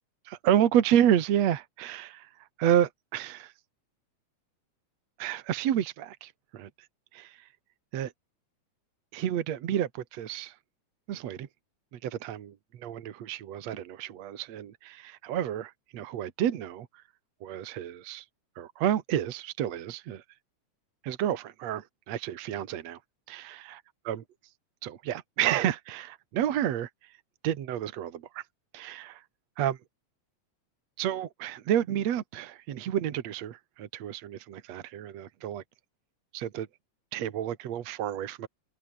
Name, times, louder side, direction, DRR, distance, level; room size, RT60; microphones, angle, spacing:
voice 1, 0.3-3.5 5.2-6.7 7.1-7.5 7.9-8.1 9.1-10.6 11.1-11.5 11.9-17.0 17.4-18.3 18.6-20.2 21.0-23.0 23.3-23.8 24.1-24.2 24.8-27.1 27.4-28.4 28.7-29.2 29.6-29.8 31.0-35.6 36.3-36.7 37.1-38.5, right 10 dB, 65° right, 2.6 m, -30 dB
omnidirectional pair, 3.4 m